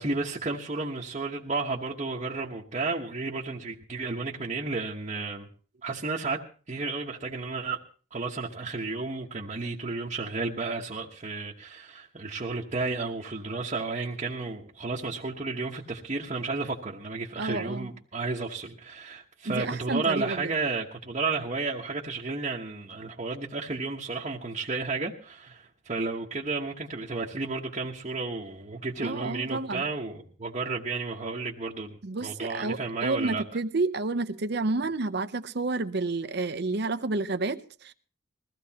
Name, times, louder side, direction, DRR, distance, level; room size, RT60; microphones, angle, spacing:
voice 1, 0.0-5.5 5.8-6.4 6.7-7.8 8.1-33.4, right 3 dB, 35° right, 1.1 m, -32 dB
voice 2, 17.4-17.9 19.4-20.5 29.0-29.9 32.0-37.9, right 3 dB, 55° right, 0.7 m, -30 dB
21.0 x 15.5 x 2.9 m
head